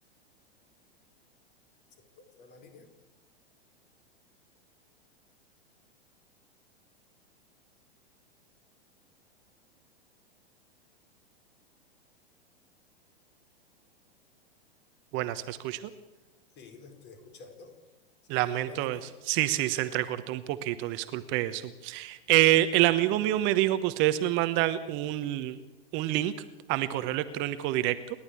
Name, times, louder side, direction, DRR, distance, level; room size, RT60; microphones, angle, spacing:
voice 1, 2.2-2.9 16.6-17.7 18.4-19.0, left 3 dB, 35° left, 5 dB, 4.8 m, -49 dB
voice 2, 15.1-15.9 18.3-19.0 19.2-25.6 25.9-26.3 26.7-28.0, right 15 dB, 40° right, 12 dB, 1.1 m, -27 dB
29.0 x 11.5 x 8.5 m, 1.1 s
figure-of-eight pair, 100°, 31 cm